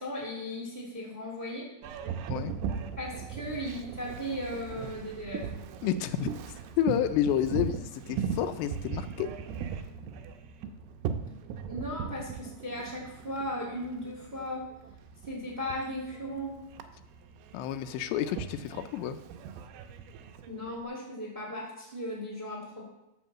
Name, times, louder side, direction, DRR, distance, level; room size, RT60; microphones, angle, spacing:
voice 1, 0.0-1.7 3.0-5.4 11.7-14.6 15.3-16.5 20.5-22.8, equal, 15° right, -3 dB, 1.8 m, -37 dB
Boat Water vehicle, 1.8-20.8, right 7 dB, 80° right, 2.6 m, -39 dB
voice 2, 5.8-6.3 6.8-9.3 17.5-19.2, left 10 dB, 85° left, 10 dB, 2.7 m, -30 dB
12.5 x 4.3 x 7.3 m, 0.93 s
omnidirectional pair, 5.0 m